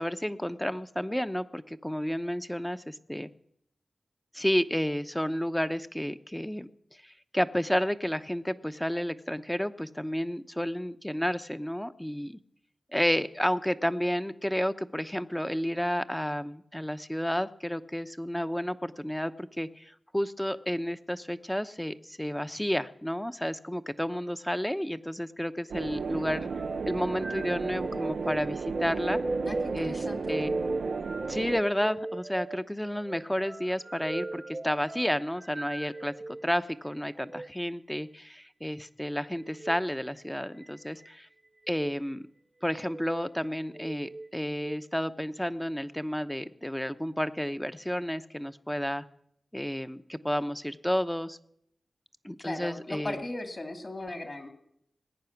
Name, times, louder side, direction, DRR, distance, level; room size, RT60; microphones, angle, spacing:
voice 1, 0.0-3.3 4.3-6.7 7.0-12.4 12.9-26.5 26.9-29.2 29.7-30.0 30.3-30.5 31.3-41.3 41.7-42.3 42.6-49.0 49.5-51.4 52.2-53.1, equal, 10° left, 11 dB, 0.8 m, -31 dB
sound 1, 25.7-31.6, right 5 dB, 85° right, 0.4 m, -34 dB
sound 2, 26.5-36.4 37.2-37.5 39.5-39.8 40.6-41.1 41.7-42.0 42.7-43.2 43.7-44.8, right 2 dB, 35° right, 0.6 m, -37 dB
voice 2, 29.4-30.4 52.4-54.5, left 2 dB, 50° left, 4 dB, 2.8 m, -37 dB
19.5 x 9.0 x 5.9 m, 0.74 s
cardioid pair, 40°, 0 cm